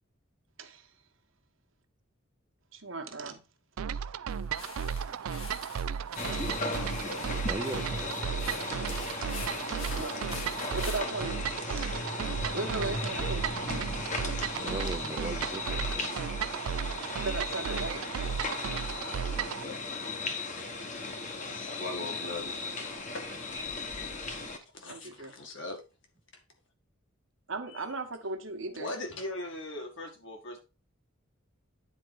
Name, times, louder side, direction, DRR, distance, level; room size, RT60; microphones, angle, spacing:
voice 1, 0.6-0.9 2.7-3.4 3.9-4.0 5.1-5.2 6.3-6.4 8.7-8.8 9.7-10.3 10.7-11.8 12.5-13.6 17.2-18.1 24.8-25.3 27.5-28.9, right 3 dB, 65° right, 1.3 m, -37 dB
sound 1, 3.8-19.6, right 7 dB, 90° right, 0.4 m, -35 dB
sound 2, 4.3-11.0, left 4 dB, 75° left, 2.5 m, -46 dB
sound 3, 6.2-24.6, left 3 dB, 35° left, 1.2 m, -36 dB
voice 2, 7.5-8.7 9.9-10.0 13.4-14.1 14.6-16.2 23.5-23.6, right 2 dB, 20° right, 0.5 m, -40 dB
voice 3, 21.7-22.5 22.9-23.2 24.8-25.8 27.7-27.8 28.7-30.6, left 2 dB, 60° left, 2.0 m, -39 dB
9.5 x 4.6 x 4.6 m
head